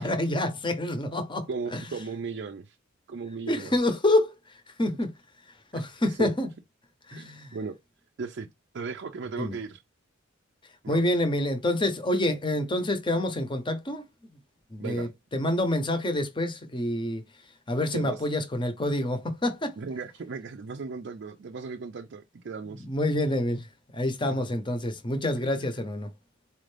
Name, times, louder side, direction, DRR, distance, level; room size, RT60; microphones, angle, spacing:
voice 1, 0.0-1.8 3.5-5.1 5.7-6.5 7.1-7.6 9.4-9.6 10.9-14.1 14.7-17.2 17.7-19.8 22.6-23.7 23.9-26.1, left 1 dB, 25° left, 0.7 m, -27 dB
voice 2, 1.5-2.8 3.1-3.7 5.7-5.8 6.1-6.3 7.1-7.8 8.2-8.5 8.7-9.8 10.8-11.1 14.8-15.1 17.9-18.2 19.8-22.9 24.2-24.4, right 4 dB, 55° right, 0.4 m, -36 dB
4.3 x 2.5 x 3.2 m
head